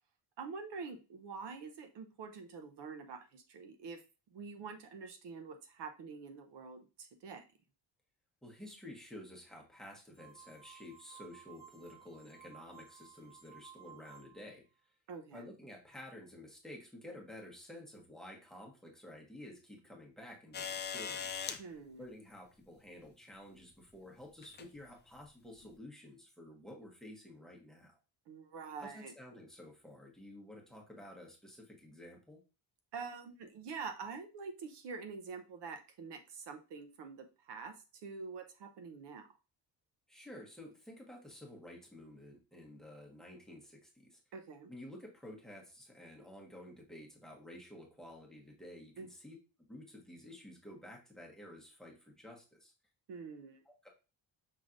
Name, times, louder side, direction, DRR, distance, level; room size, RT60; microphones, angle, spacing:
voice 1, 0.4-4.0 4.3-7.4 15.1-15.5 21.6-22.1 28.3-29.1 32.9-37.8 38.0-39.3 44.3-44.7 49.0-49.1 53.1-53.6, right 5 dB, 65° right, 6 dB, 0.9 m, -46 dB
voice 2, 8.4-14.6 15.3-21.4 22.0-27.9 28.8-32.4 40.1-44.2 44.7-49.4 49.7-52.7 53.6-53.9, left 1 dB, ahead, 0 dB, 1.2 m, -52 dB
sound 1, 10.2-14.6, right 9 dB, 20° right, 1.5 m, -57 dB
sound 2, 20.5-21.6 23.0-23.1 24.4-24.7 25.6-25.7, left 7 dB, 25° left, 0.4 m, -39 dB
5.7 x 3.3 x 2.5 m, 0.31 s
cardioid pair, 125°, 46 cm